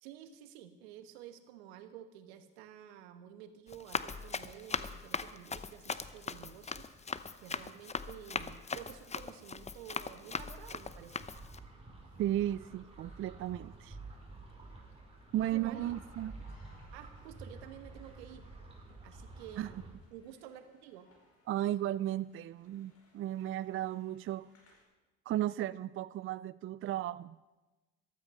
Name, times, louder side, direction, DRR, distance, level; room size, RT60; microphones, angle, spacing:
voice 1, 0.0-6.9 7.4-11.2 15.3-15.9 16.9-18.4 18.9-21.1, right 10 dB, 85° right, 1.2 m, -51 dB
Run, 3.7-11.6, left 5 dB, 20° left, 0.8 m, -40 dB
sound 1, 6.1-24.8, left 3 dB, 50° left, 5.0 m, -68 dB
sound 2, 10.4-19.9, right 3 dB, 20° right, 5.2 m, -51 dB
voice 2, 12.2-14.0 15.3-16.4 19.6-19.7 21.5-24.5 25.3-27.4, right 13 dB, 40° right, 0.4 m, -35 dB
14.5 x 13.0 x 5.4 m
hypercardioid pair, 65°, 32 cm